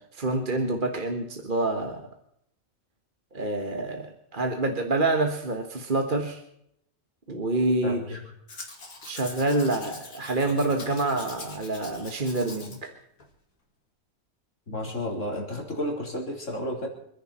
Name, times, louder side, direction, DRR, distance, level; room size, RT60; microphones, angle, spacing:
voice 1, 0.0-2.1 3.3-6.4 7.3-8.0 9.0-12.9, right 2 dB, 40° right, 4 dB, 1.6 m, -27 dB
voice 2, 7.8-8.2 14.7-16.9, left 1 dB, 60° left, 0 dB, 4.2 m, -32 dB
Domestic sounds home sounds, 8.5-12.8 13.2-13.3, left 3 dB, 90° left, 2.8 m, -43 dB
27.0 x 10.5 x 4.3 m, 0.74 s
omnidirectional pair, 1.4 m